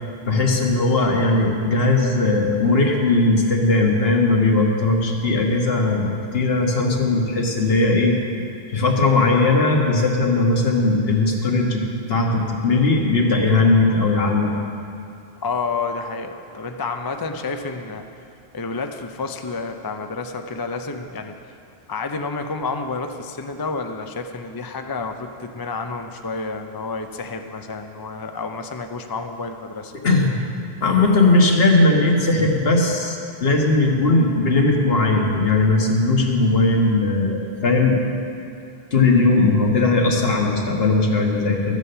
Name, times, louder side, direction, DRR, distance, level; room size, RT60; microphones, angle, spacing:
voice 1, 0.3-8.2 8.7-11.8 12.1-14.5 30.0-30.4 30.8-38.0 38.9-41.8, left 2 dB, 70° left, 0 dB, 1.6 m, -18 dB
voice 2, 15.4-18.0 18.5-21.3 21.9-29.9, left 4 dB, 30° left, 5 dB, 0.5 m, -29 dB
13.0 x 8.2 x 6.7 m, 2.6 s
omnidirectional pair, 1.1 m